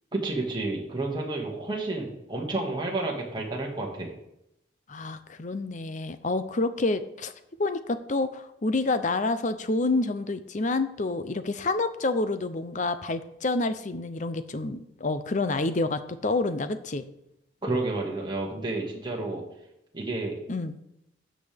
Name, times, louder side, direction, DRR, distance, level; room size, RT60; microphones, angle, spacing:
voice 1, 0.1-4.1 17.6-19.4 19.9-20.4, right 2 dB, 25° right, -1 dB, 1.9 m, -30 dB
voice 2, 4.9-7.3 7.6-17.0 20.5-20.7, left 2 dB, 40° left, 12 dB, 0.6 m, -28 dB
13.0 x 7.7 x 3.5 m, 0.82 s
head